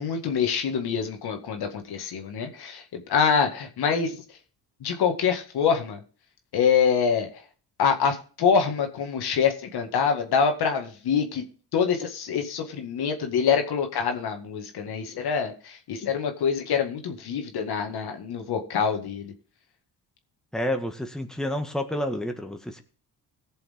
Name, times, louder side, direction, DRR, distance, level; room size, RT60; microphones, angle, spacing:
voice 1, 0.0-4.2 4.8-6.0 6.5-7.3 7.8-11.5 11.7-19.3, left 6 dB, 70° left, 5 dB, 2.0 m, -25 dB
voice 2, 20.5-22.8, left 1 dB, ahead, 5 dB, 1.7 m, -29 dB
17.0 x 6.9 x 3.7 m, 0.39 s
supercardioid pair, 75°, 40 cm